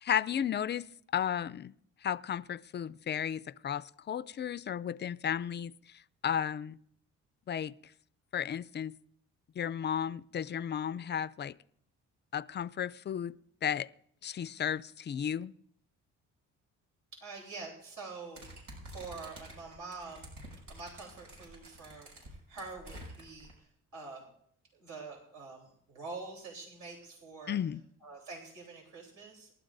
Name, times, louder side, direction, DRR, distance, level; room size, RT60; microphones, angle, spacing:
voice 1, 0.0-0.9 1.1-1.7 2.0-5.7 6.2-6.8 7.5-7.7 8.3-8.9 9.6-11.5 12.3-13.3 13.6-13.9 14.2-15.5 27.5-27.8, left 9 dB, 35° left, 0.4 m, -33 dB
voice 2, 17.1-20.3 20.7-24.3 24.7-27.6 28.0-29.5, right 4 dB, 70° right, 3.7 m, -46 dB
sound 1, 18.3-23.5, right 1 dB, 90° right, 6.5 m, -49 dB
27.5 x 12.0 x 2.6 m
cardioid pair, 90°, 30 cm